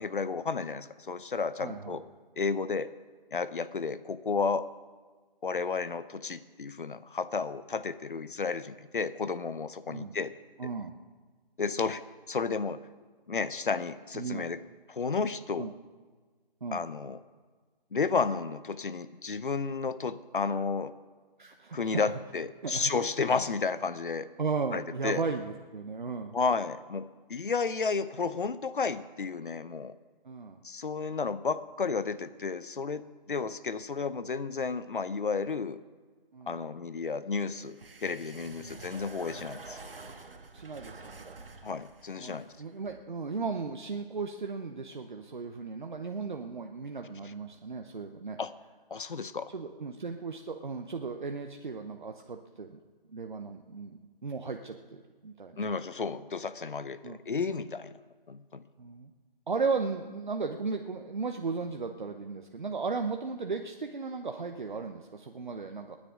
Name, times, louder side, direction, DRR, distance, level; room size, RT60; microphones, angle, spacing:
voice 1, 0.0-2.0 2.4-2.9 3.3-4.7 5.4-10.3 11.6-12.0 12.3-12.8 13.3-14.6 14.9-15.7 16.7-17.2 17.9-20.9 21.7-24.3 24.7-25.2 26.3-30.0 30.6-35.8 36.5-39.8 41.6-42.5 48.4-48.5 48.9-49.5 55.6-57.9 58.3-58.6, left 4 dB, 60° left, 14 dB, 0.8 m, -32 dB
voice 2, 1.6-2.0 9.9-10.1 10.6-10.9 14.1-14.5 15.6-15.7 16.6-16.8 21.4-22.2 22.6-22.9 24.4-26.4 30.2-30.6 36.3-36.6 38.5-38.8 40.5-41.4 42.1-48.4 49.5-52.8 53.1-55.6 57.0-57.2 58.8-59.1 59.5-66.0, right 4 dB, 55° right, 4 dB, 0.9 m, -36 dB
sound 1, 37.4-43.0, right 3 dB, 75° right, 1.7 m, -48 dB
29.0 x 9.9 x 3.7 m, 1.4 s
hypercardioid pair, 180°, 29 cm